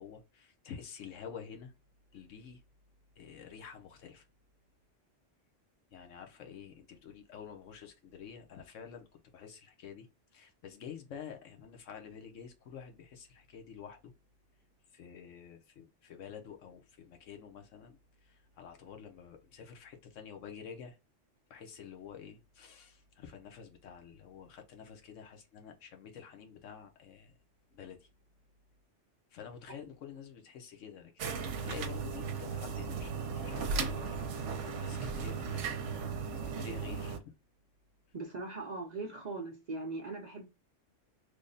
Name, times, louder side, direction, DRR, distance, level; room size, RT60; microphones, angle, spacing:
voice 1, 0.0-1.7 2.1-2.6 3.2-4.3 5.9-9.1 9.3-14.1 14.9-21.0 21.5-27.3 27.7-28.1 29.3-35.7 36.4-37.4, left 7 dB, 85° left, 1.1 m, -49 dB
sound 1, 31.2-37.2, right 5 dB, 75° right, 0.9 m, -36 dB
voice 2, 38.1-40.5, right 3 dB, 45° right, 0.6 m, -40 dB
3.4 x 2.1 x 3.8 m
omnidirectional pair, 1.3 m